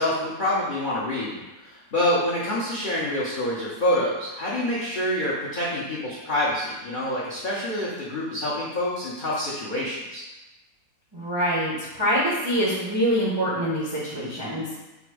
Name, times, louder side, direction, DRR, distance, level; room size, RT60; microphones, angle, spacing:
voice 1, 0.0-10.2, left 1 dB, 75° left, -7 dB, 0.4 m, -27 dB
voice 2, 11.1-14.7, equal, 45° right, -7 dB, 0.3 m, -25 dB
4.0 x 2.5 x 4.7 m, 1.1 s
omnidirectional pair, 2.0 m